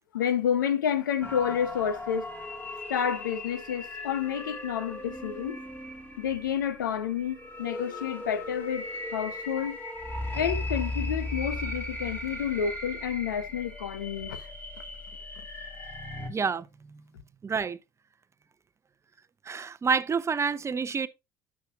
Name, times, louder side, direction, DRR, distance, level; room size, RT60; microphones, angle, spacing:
voice 1, 0.1-2.3 2.9-5.6 6.2-9.8 10.3-14.5, left 8 dB, 80° left, 0.9 m, -29 dB
sound 1, 1.2-16.3, left 2 dB, 20° left, 3.2 m, -37 dB
voice 2, 16.3-16.7 17.4-17.8 19.5-21.1, right 5 dB, 25° right, 0.7 m, -28 dB
9.9 x 7.3 x 2.4 m
hypercardioid pair, 60°, 10 cm